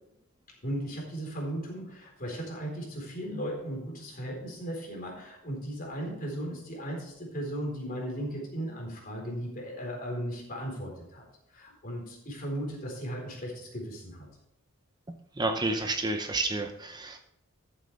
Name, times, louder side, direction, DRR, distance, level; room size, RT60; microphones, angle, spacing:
voice 1, 0.6-11.2 11.5-14.3, equal, 40° left, -1 dB, 3.9 m, -36 dB
voice 2, 15.4-17.2, right 2 dB, 20° right, 6 dB, 0.6 m, -30 dB
13.5 x 7.8 x 3.3 m, 0.80 s
head